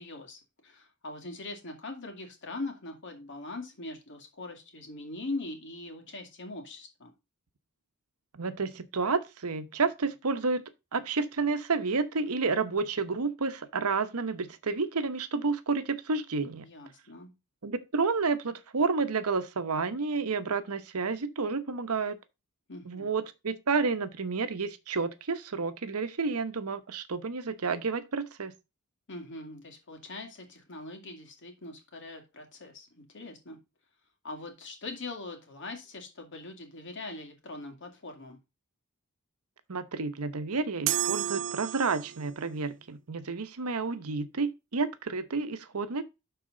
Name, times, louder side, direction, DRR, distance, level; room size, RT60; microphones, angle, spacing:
voice 1, 0.0-7.1 16.6-17.3 22.7-23.1 29.1-33.6 34.2-38.4, left 2 dB, 55° left, 2.4 m, -41 dB
voice 2, 8.3-10.6 10.9-16.7 17.6-22.2 22.9-28.5 39.7-46.0, right 4 dB, 80° right, 0.9 m, -30 dB
sound 1, 40.9-42.4, right 13 dB, 60° right, 0.5 m, -31 dB
12.0 x 4.2 x 3.8 m
head